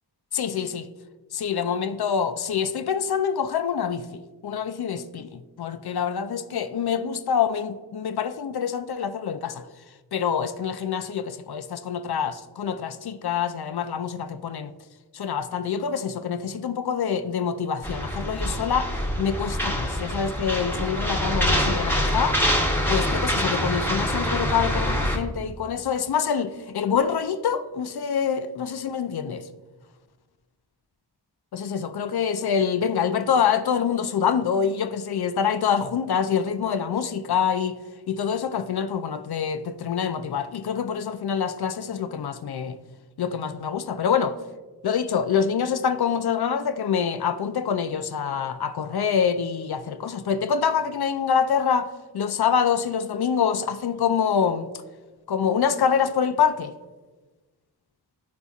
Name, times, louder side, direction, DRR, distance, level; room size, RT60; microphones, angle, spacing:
voice 1, 0.3-0.9 1.3-9.6 10.1-14.7 15.1-18.9 19.2-22.4 22.9-29.5 31.5-37.8 38.1-42.8 43.2-44.4 44.8-54.7 55.3-56.7, left 7 dB, 60° left, 0.5 m, -26 dB
sound 1, 17.8-25.2, equal, 5° left, 0.9 m, -25 dB
10.5 x 4.0 x 2.4 m
wide cardioid pair, 50°, 43 cm